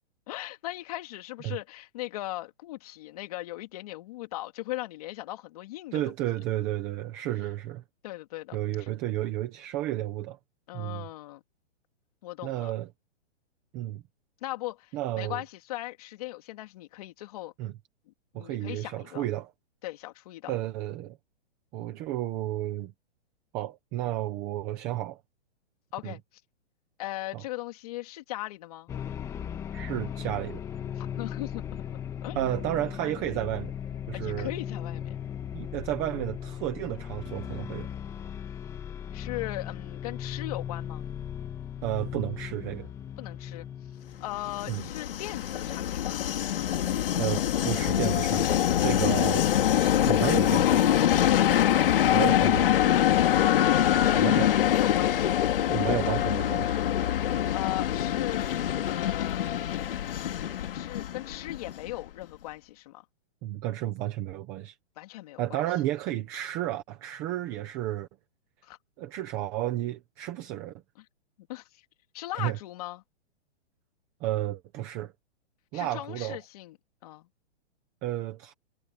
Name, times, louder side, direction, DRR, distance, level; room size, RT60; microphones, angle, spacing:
voice 1, 0.3-6.0 8.0-8.9 10.7-11.4 12.2-12.7 14.4-17.5 18.1-19.3 19.8-20.5 25.9-26.2 27.0-28.9 31.0-32.4 34.1-35.2 39.1-41.0 43.2-43.7 44.2-46.3 51.2-51.8 52.0-52.6 52.9-55.3 57.5-58.5 58.8-59.4 60.2-60.4 60.7-63.0 65.0-65.6 68.6-68.8 71.5-71.6 72.1-73.0 75.7-76.8 77.0-77.3, left 17 dB, 35° left, 3.2 m, -38 dB
voice 2, 5.9-7.8 8.5-10.4 10.7-11.1 12.4-12.9 13.7-14.0 14.9-15.4 17.6-17.7 18.3-19.5 20.5-21.2 21.7-22.9 23.5-25.2 26.0-26.2 27.3-27.4 29.7-30.6 32.3-33.7 34.1-34.5 35.5-37.9 41.8-42.9 44.7-44.9 47.2-49.5 49.8-50.8 52.1-52.7 54.2-54.5 55.7-56.8 63.4-64.8 65.4-68.1 69.0-70.7 72.3-72.6 74.2-75.1 75.7-76.4 78.0-78.5, right 14 dB, 10° right, 0.6 m, -32 dB
sound 1, 28.9-44.8, left 9 dB, 10° left, 1.6 m, -37 dB
Train, 44.3-62.1, left 11 dB, 55° left, 2.6 m, -24 dB
hypercardioid pair, 175°, 33 cm